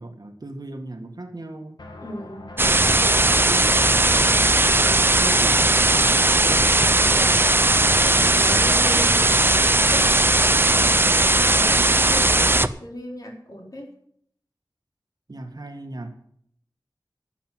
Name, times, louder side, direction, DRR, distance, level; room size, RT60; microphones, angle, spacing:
voice 1, 0.0-1.8 2.9-4.7 4.9-6.8 15.3-16.2, right 1 dB, 60° right, 5 dB, 2.1 m, -38 dB
sound 1, 1.8-8.5, left 2 dB, 80° left, 2.0 m, -43 dB
voice 2, 2.0-2.5 7.1-7.4 8.0-10.1 10.8-12.3 12.8-13.9, equal, 55° left, 0 dB, 3.9 m, -36 dB
sound 2, 2.6-12.7, right 2 dB, 30° right, 0.6 m, -18 dB
11.0 x 7.6 x 9.3 m, 0.66 s
wide cardioid pair, 65°, 8 cm